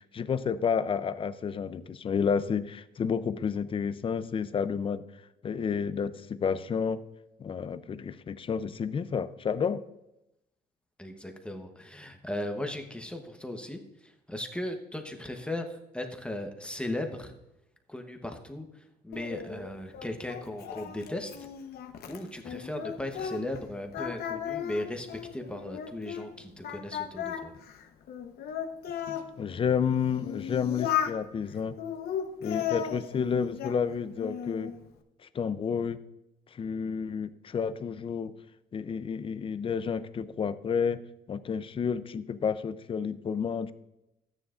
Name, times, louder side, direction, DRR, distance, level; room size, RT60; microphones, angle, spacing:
voice 1, 0.0-5.0 5.4-7.0 7.4-9.8 29.4-31.8 32.4-34.7 35.3-36.0 36.5-38.3 38.7-41.0 41.3-43.7, left 6 dB, 30° left, 14 dB, 0.5 m, -30 dB
voice 2, 11.0-17.3 17.9-21.5 22.1-25.1 25.3-27.5, left 1 dB, 5° left, 4 dB, 1.0 m, -37 dB
Singing, 19.1-23.6 23.9-26.3 26.6-29.3 29.9-31.2 31.8-33.8 34.2-34.8, left 9 dB, 65° left, 1.0 m, -35 dB
13.0 x 9.7 x 2.5 m, 0.89 s
cardioid pair, 110°, 17 cm